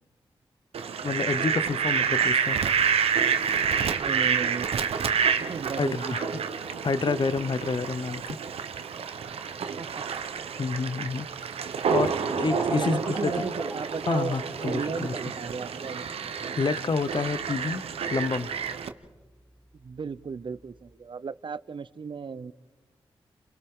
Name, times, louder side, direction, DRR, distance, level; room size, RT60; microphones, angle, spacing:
Fowl, 0.7-18.9, right 7 dB, 80° right, 0.9 m, -29 dB
voice 1, 1.0-2.6 5.8-6.3 6.8-8.4 10.6-11.3 11.9-13.3 14.1-15.1 16.6-17.8 18.1-18.5, left 4 dB, 50° left, 0.8 m, -28 dB
voice 2, 4.0-5.1 5.4-6.4 9.6-10.0 12.7-16.2 19.7-22.5, right 5 dB, 55° right, 0.7 m, -35 dB
sound 1, 12.5-20.9, equal, 5° left, 2.1 m, -41 dB
29.5 x 28.0 x 3.8 m
cardioid pair, 45°, 10 cm